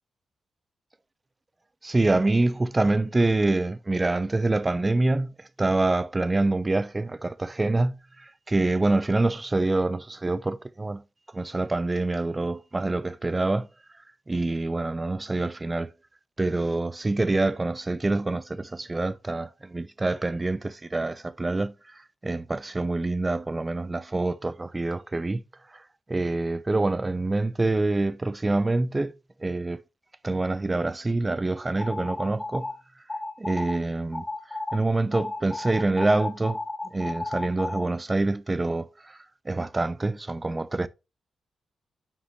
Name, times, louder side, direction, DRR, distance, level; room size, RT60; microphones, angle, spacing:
voice 1, 1.8-11.0 11.3-13.7 14.3-15.9 16.4-21.7 22.2-25.4 25.7-25.8 26.1-29.1 29.4-29.8 30.2-32.7 33.4-36.6 36.9-39.2 39.5-40.9, right 2 dB, 20° right, 0.5 m, -26 dB
sound 1, 31.8-32.7 33.1-33.8 34.1-34.8 35.1-37.8, left 2 dB, 15° left, 1.6 m, -33 dB
9.7 x 5.7 x 2.8 m
cardioid pair, 105°, 0 cm